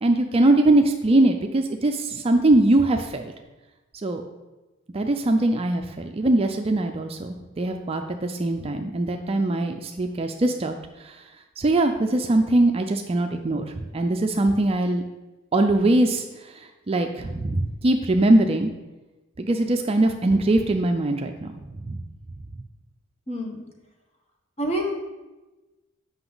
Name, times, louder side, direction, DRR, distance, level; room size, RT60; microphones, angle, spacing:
voice 1, 0.0-3.3 4.0-4.2 4.9-10.7 11.0-11.1 11.6-15.0 15.5-16.2 16.9-18.7 19.4-21.5 21.8-22.0, right 2 dB, 30° right, 5 dB, 0.4 m, -21 dB
voice 2, 23.3-23.7 24.6-24.9, equal, 30° left, 1 dB, 1.2 m, -27 dB
7.9 x 5.7 x 3.9 m, 1.1 s
head